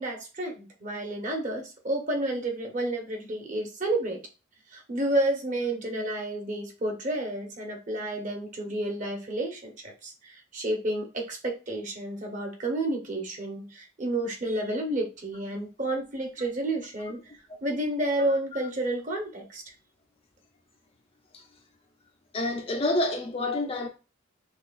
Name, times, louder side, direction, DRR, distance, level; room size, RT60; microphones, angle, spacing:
voice 1, 0.0-4.2 4.7-17.2 17.6-19.6, right 1 dB, 40° right, 1.0 m, -30 dB
voice 2, 22.3-23.9, left 2 dB, 30° left, 0.6 m, -28 dB
6.1 x 2.4 x 2.5 m
head